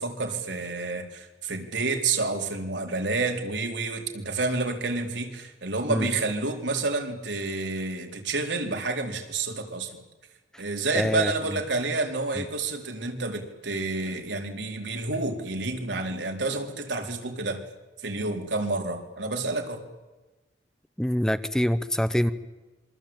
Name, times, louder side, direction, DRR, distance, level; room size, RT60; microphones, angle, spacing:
voice 1, 0.0-10.0 10.6-17.6 18.0-19.9, right 3 dB, 80° right, 3 dB, 4.4 m, -29 dB
voice 2, 10.9-11.3 12.4-12.5 21.0-22.3, equal, 5° left, 13 dB, 0.9 m, -25 dB
27.0 x 24.5 x 9.0 m, 1.1 s
head